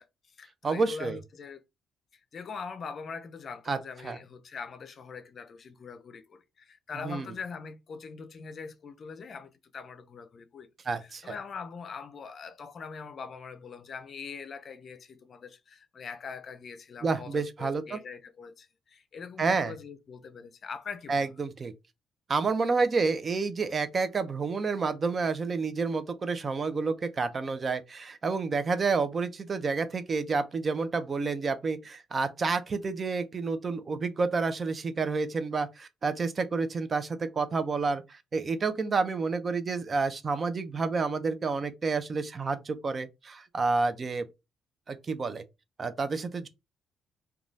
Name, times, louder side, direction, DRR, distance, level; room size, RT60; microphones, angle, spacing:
voice 1, 0.0-1.6 2.1-10.7 11.0-21.3, left 5 dB, 50° left, 0.4 m, -42 dB
voice 2, 0.6-1.2 3.7-3.8 4.0-4.2 7.0-7.2 10.9-11.3 17.0-18.0 19.4-19.7 21.1-21.7 22.3-44.3 44.9-45.4 45.8-46.5, right 4 dB, 40° right, 0.5 m, -29 dB
3.1 x 2.3 x 2.6 m
cardioid pair, 90°, 0 cm